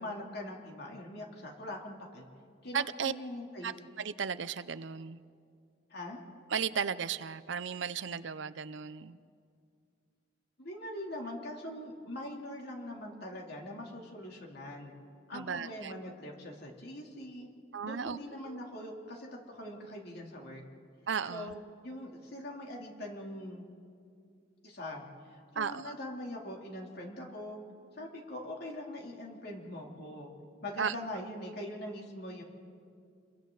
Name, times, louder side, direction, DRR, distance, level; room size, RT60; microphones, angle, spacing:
voice 1, 0.0-2.3 2.6-3.7 5.9-6.2 10.6-14.9 15.3-17.5 17.8-20.6 21.3-23.6 24.6-27.6 28.0-30.3 30.6-32.4, left 1 dB, 60° left, -1 dB, 3.2 m, -42 dB
voice 2, 2.7-3.1 3.6-3.7 4.0-5.2 6.5-9.2 15.3-15.9 17.7-18.2 18.4-18.6 21.1-21.5 25.6-25.9 30.8-30.9, right 6 dB, 75° right, 15 dB, 0.6 m, -35 dB
29.5 x 22.5 x 4.0 m, 2.3 s
head